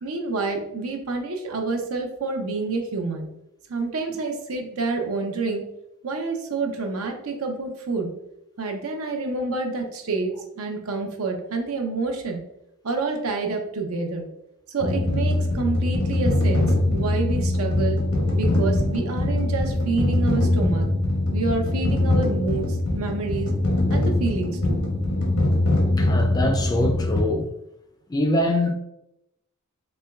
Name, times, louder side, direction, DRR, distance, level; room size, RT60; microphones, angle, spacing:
voice 1, 0.0-3.3 3.7-5.6 6.0-8.1 8.6-12.4 12.8-14.3 14.7-18.0 18.4-20.9 21.3-23.5 23.9-24.8, right 3 dB, 85° right, 0.7 m, -28 dB
sound 1, 14.8-27.2, left 1 dB, 85° left, 0.8 m, -22 dB
voice 2, 26.0-27.5 28.1-28.7, left 1 dB, 20° left, 0.3 m, -23 dB
4.3 x 3.0 x 2.3 m
head